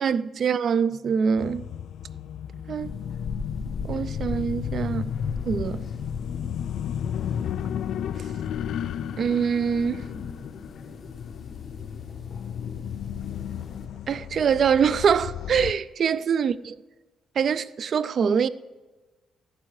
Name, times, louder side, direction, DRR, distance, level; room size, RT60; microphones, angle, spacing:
voice 1, 0.0-1.6 2.7-2.9 3.9-5.1 5.5-5.9 9.2-10.0 14.1-16.6 17.4-18.5, right 7 dB, 55° right, 0.3 m, -24 dB
sound 1, 1.4-15.7, left 9 dB, 70° left, 0.3 m, -33 dB
sound 2, 2.8-13.9, left 4 dB, 45° left, 1.4 m, -39 dB
14.5 x 11.0 x 3.2 m
cardioid pair, 90°, 0 cm